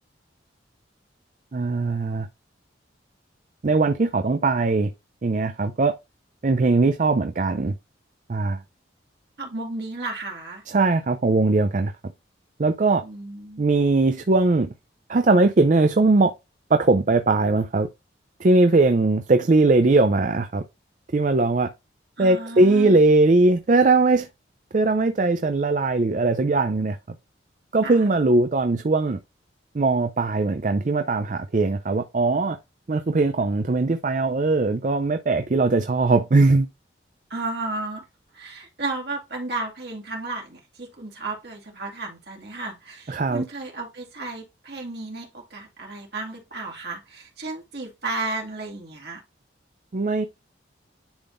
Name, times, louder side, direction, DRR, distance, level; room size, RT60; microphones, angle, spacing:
voice 1, 1.5-2.3 3.6-4.9 5.2-6.0 6.4-7.8 8.3-8.6 10.7-11.9 12.6-13.0 13.6-14.7 15.1-16.3 16.7-17.9 18.4-20.6 21.1-21.7 22.2-24.3 24.7-27.0 27.7-29.2 29.7-32.6 32.9-36.7 43.1-43.4 49.9-50.3, right 3 dB, 40° right, 0.4 m, -20 dB
voice 2, 9.4-10.6 13.0-13.6 22.2-23.0 27.8-28.0 37.3-38.0 38.3-49.2, right 2 dB, 55° right, 2.0 m, -33 dB
10.5 x 3.6 x 2.5 m
head